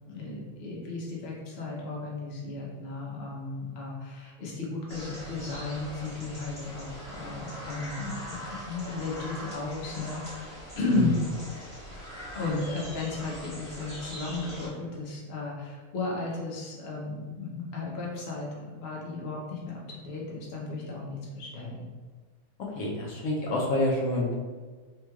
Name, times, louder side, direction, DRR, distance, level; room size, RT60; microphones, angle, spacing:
voice 1, 0.1-8.4 8.7-11.1 12.3-21.9, left 3 dB, 55° left, -3 dB, 0.9 m, -34 dB
sound 1, 4.9-14.7, equal, 25° right, 1.0 m, -42 dB
voice 2, 22.7-24.3, left 1 dB, 80° left, -3 dB, 1.1 m, -27 dB
3.7 x 3.0 x 2.3 m, 1.4 s
omnidirectional pair, 1.5 m